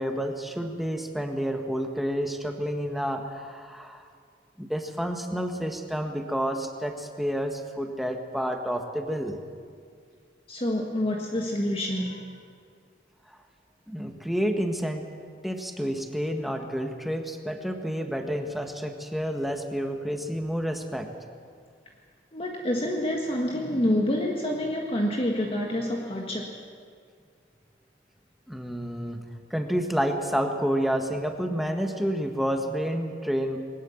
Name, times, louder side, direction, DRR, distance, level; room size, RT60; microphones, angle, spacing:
voice 1, 0.0-4.1 4.6-9.4 13.9-15.1 15.4-21.1 28.5-33.6, equal, ahead, 4 dB, 1.6 m, -29 dB
voice 2, 10.5-12.4 22.3-26.5, left 1 dB, 30° left, 0 dB, 1.7 m, -27 dB
21.0 x 19.5 x 7.3 m, 2.1 s
head